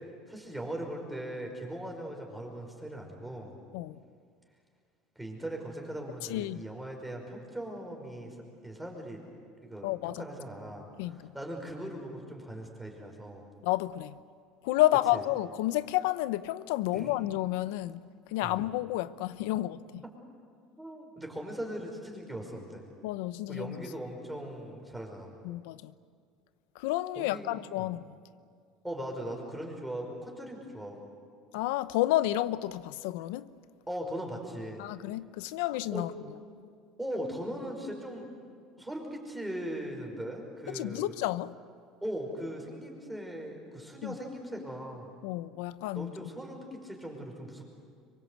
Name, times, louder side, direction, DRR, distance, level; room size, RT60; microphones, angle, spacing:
voice 1, 0.3-3.6 5.2-8.4 8.6-9.2 9.6-10.9 11.3-13.5 15.1-15.2 16.9-17.1 18.4-18.7 20.8-22.8 23.5-25.3 27.2-27.9 28.8-31.1 33.9-34.8 35.9-36.0 37.0-38.3 38.8-41.2 42.0-45.1 46.0-47.7, right 1 dB, 5° right, 5.3 m, -39 dB
voice 2, 6.3-6.6 9.8-10.2 11.0-11.3 13.6-14.2 14.6-18.0 18.3-20.0 23.0-23.8 25.4-25.9 26.7-28.1 31.5-33.5 34.8-36.1 40.7-41.5 44.0-44.2 45.2-46.3, left 16 dB, 85° left, 0.8 m, -30 dB
25.5 x 23.5 x 8.2 m
cardioid pair, 130°, 0 cm